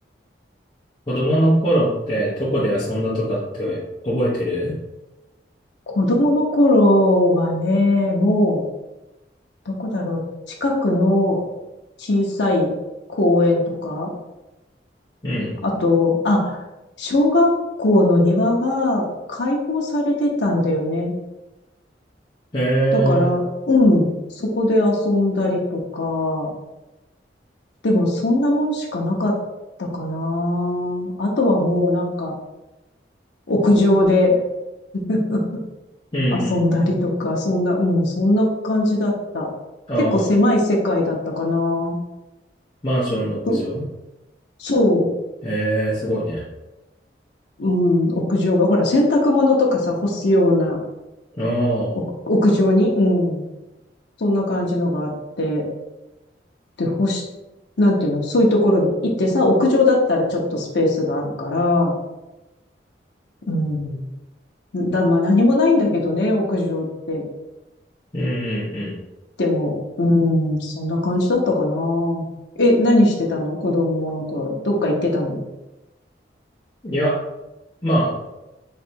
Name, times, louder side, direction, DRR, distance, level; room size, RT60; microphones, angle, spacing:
voice 1, 1.1-4.7 15.2-15.5 22.5-23.3 36.1-36.6 39.9-40.3 42.8-43.8 45.4-46.5 51.4-51.9 68.1-68.9 76.8-77.1 77.8-78.1, right 1 dB, 25° left, -9 dB, 0.8 m, -22 dB
voice 2, 6.0-8.6 9.7-10.2 10.6-11.4 12.0-12.7 13.1-14.1 15.6-16.6 17.0-17.5 17.8-21.1 22.9-24.1 24.4-26.5 27.8-29.4 29.8-32.3 33.5-34.4 34.9-35.6 36.3-39.5 40.1-41.9 43.4-43.6 44.6-45.1 47.6-50.8 52.3-53.4 54.2-55.1 55.4-55.7 56.8-57.2 57.8-62.0 63.5-64.0 64.7-67.2 69.4-72.3 72.6-75.4, left 1 dB, 75° left, -1 dB, 0.7 m, -19 dB
3.2 x 2.7 x 4.3 m, 1.0 s
head